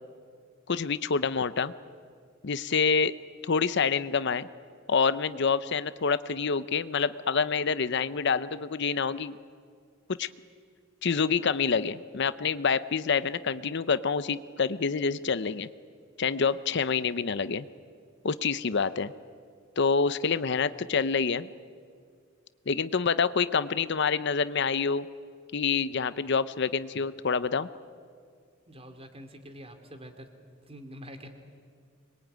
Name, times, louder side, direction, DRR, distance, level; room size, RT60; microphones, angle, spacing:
voice 1, 0.7-1.7 2.4-3.2 3.4-4.5 4.9-9.4 10.1-10.3 11.0-15.7 16.2-17.6 18.2-19.1 19.8-21.5 22.7-25.1 25.5-27.7, left 5 dB, 60° left, 15 dB, 0.7 m, -27 dB
voice 2, 28.7-30.3 30.7-31.3, equal, 30° right, 7 dB, 2.7 m, -45 dB
25.0 x 22.0 x 9.4 m, 2.1 s
head